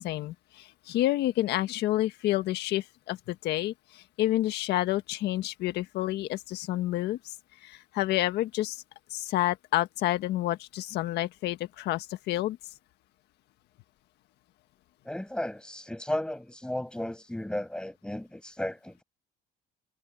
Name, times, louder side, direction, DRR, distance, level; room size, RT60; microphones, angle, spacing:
voice 1, 0.0-7.3 7.6-8.8 9.1-12.6, left 15 dB, 80° left, 1.6 m, -29 dB
voice 2, 15.0-19.0, left 1 dB, 5° left, 7.5 m, -34 dB
cardioid pair, 110°, 17 cm